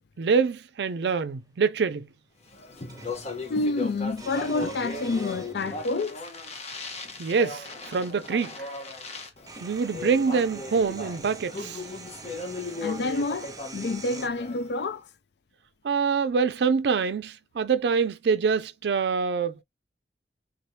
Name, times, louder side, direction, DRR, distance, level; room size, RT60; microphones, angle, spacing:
voice 1, 0.2-2.1 7.2-8.5 9.6-11.8 15.8-19.5, right 5 dB, 70° right, 0.4 m, -25 dB
sound 1, 1.2-1.3 2.9-3.4 4.1-6.0 6.9-7.0 8.5-8.6 8.9-14.3, right 3 dB, 20° right, 0.6 m, -44 dB
Speech, 2.5-14.9, left 3 dB, 40° left, 0.9 m, -37 dB
voice 2, 3.5-6.2 12.8-15.1, left 3 dB, 65° left, 0.4 m, -28 dB
3.8 x 3.1 x 2.8 m
head